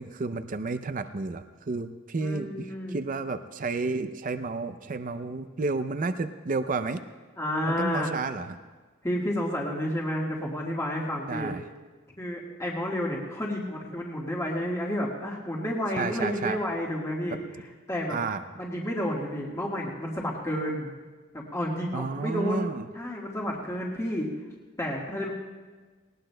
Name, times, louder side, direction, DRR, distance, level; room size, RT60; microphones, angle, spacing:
voice 1, 0.0-7.0 7.6-8.6 11.3-11.7 15.9-16.6 17.3-17.4 18.1-18.4 21.9-22.9, right 3 dB, 45° right, 9 dB, 0.5 m, -31 dB
voice 2, 2.2-3.0 7.4-8.1 9.0-11.5 12.2-17.4 17.9-18.2 18.6-20.9 21.3-24.3 24.8-25.3, equal, 15° left, -3 dB, 1.6 m, -30 dB
19.0 x 19.0 x 2.2 m, 1.4 s
head